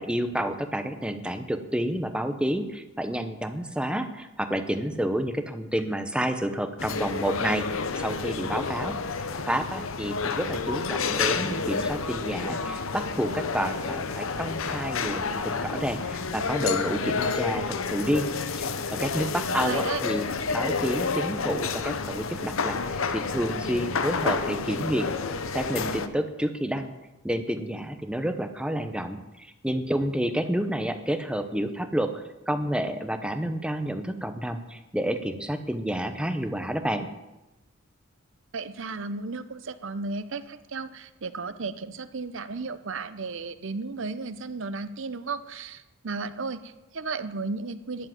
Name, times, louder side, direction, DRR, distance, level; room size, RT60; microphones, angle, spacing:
voice 1, 0.0-8.9 9.5-18.3 18.6-20.3 20.5-25.1 25.5-26.9 27.2-37.1, equal, 5° right, 8 dB, 0.8 m, -29 dB
sound 1, 6.8-26.1, left 4 dB, 70° left, 0.8 m, -29 dB
voice 2, 19.6-20.0 38.5-48.1, right 4 dB, 60° right, 13 dB, 0.7 m, -34 dB
11.5 x 7.4 x 9.4 m, 1.0 s
head